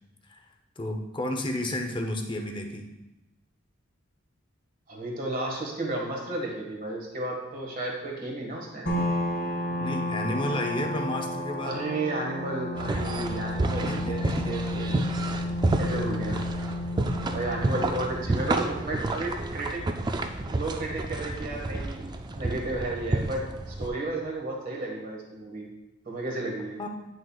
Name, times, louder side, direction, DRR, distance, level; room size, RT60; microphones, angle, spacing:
voice 1, 0.8-2.9 9.8-11.7 13.9-14.5 15.8-16.1 17.4-17.9 26.8-26.9, left 1 dB, 25° left, 3 dB, 0.7 m, -32 dB
voice 2, 4.9-8.9 11.6-15.0 15.8-16.4 17.3-19.8 20.5-22.1 22.3-25.7 26.0-26.8, right 2 dB, 40° right, 0 dB, 1.6 m, -33 dB
sound 1, 8.9-22.1, left 1 dB, 50° left, 1.5 m, -33 dB
sound 2, 12.8-23.9, right 2 dB, 20° right, 0.3 m, -30 dB
8.8 x 6.2 x 2.3 m, 1.0 s
head